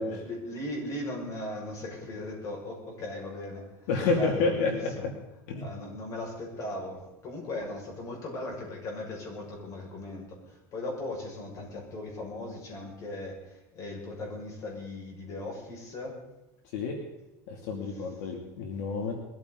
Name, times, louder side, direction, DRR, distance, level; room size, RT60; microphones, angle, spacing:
voice 1, 0.0-3.7 4.1-5.1 5.6-16.2 17.9-18.0, left 1 dB, 40° left, 0 dB, 6.2 m, -38 dB
voice 2, 3.9-4.9 5.5-5.6 16.7-17.0 17.5-19.1, left 4 dB, 80° left, 2 dB, 2.7 m, -29 dB
21.5 x 14.5 x 4.0 m, 0.99 s
supercardioid pair, 145°, 9 cm